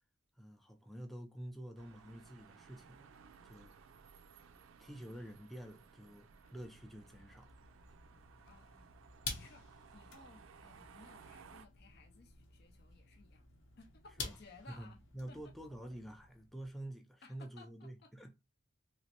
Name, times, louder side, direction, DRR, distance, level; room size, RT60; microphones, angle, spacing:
voice 1, 0.4-3.8 4.8-7.5 14.2-14.4 14.7-18.3, right 1 dB, ahead, 0.4 m, -49 dB
sound 1, 1.8-11.7, right 6 dB, 80° right, 0.4 m, -60 dB
sound 2, 6.3-16.7, left 4 dB, 70° left, 0.9 m, -51 dB
voice 2, 8.5-9.0 9.3-9.6 9.9-13.5 13.8-15.0 15.3-15.4 17.2-18.1, left 3 dB, 50° left, 0.5 m, -59 dB
3.1 x 3.0 x 2.8 m
head